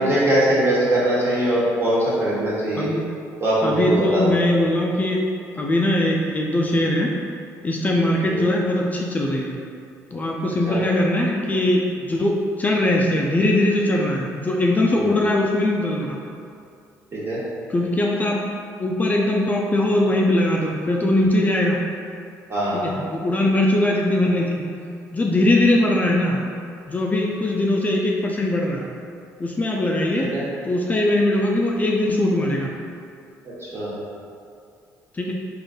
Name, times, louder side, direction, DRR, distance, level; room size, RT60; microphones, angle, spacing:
voice 1, 0.0-2.9 3.4-4.2 8.2-8.4 10.7-10.8 14.9-15.2 17.1-17.4 22.5-22.8 30.2-30.4 33.4-33.9, right 1 dB, 40° right, -7 dB, 1.4 m, -22 dB
voice 2, 3.6-5.2 5.6-7.1 7.6-9.6 10.1-16.2 17.7-18.4 18.8-21.8 22.7-24.7 25.1-26.4 26.9-28.9 29.4-30.3 30.6-32.7 35.1-35.3, left 1 dB, 25° left, -1 dB, 0.4 m, -21 dB
3.7 x 2.5 x 3.6 m, 2.4 s
cardioid pair, 85°, 7 cm